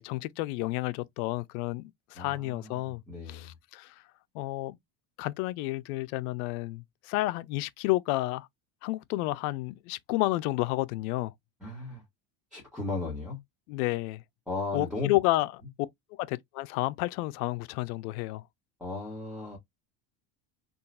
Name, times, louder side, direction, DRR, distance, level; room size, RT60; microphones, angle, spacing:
voice 1, 0.0-3.0 3.3-3.9 4.3-4.8 5.2-8.5 8.8-11.3 13.7-14.2 14.7-15.5 16.2-18.4, left 18 dB, 85° left, 0.5 m, -31 dB
voice 2, 2.1-3.5 11.6-12.0 12.5-13.4 14.5-15.1 18.8-19.6, left 3 dB, ahead, 1.2 m, -36 dB
3.8 x 2.4 x 2.3 m
cardioid pair, 145°, 43 cm